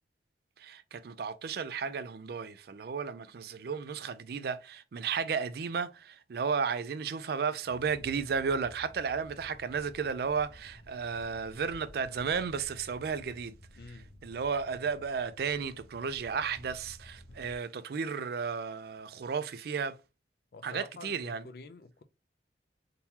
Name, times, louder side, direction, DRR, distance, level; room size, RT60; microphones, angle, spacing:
voice 1, 0.6-13.5 14.2-20.0 20.6-21.4, right 6 dB, 55° right, 0.4 m, -33 dB
sound 1, 7.6-17.6, equal, 75° left, 0.8 m, -53 dB
voice 2, 13.7-14.1 20.5-22.0, left 3 dB, 55° left, 0.4 m, -48 dB
3.7 x 2.8 x 2.8 m
head